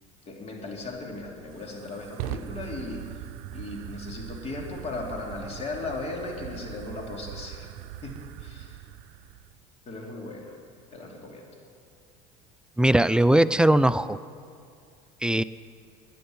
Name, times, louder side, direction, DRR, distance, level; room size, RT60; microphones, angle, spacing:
voice 1, 0.3-3.0 3.5-7.7 8.0-8.1 8.4-8.8 9.9-10.6 10.9-11.4, left 3 dB, 35° left, 0 dB, 3.1 m, -37 dB
Fire, 0.7-9.6, right 12 dB, 70° right, 0.6 m, -41 dB
voice 2, 12.8-14.2 15.2-15.4, right 1 dB, 5° right, 14 dB, 0.3 m, -20 dB
10.5 x 10.0 x 9.6 m, 2.4 s
supercardioid pair, 95°, 18 cm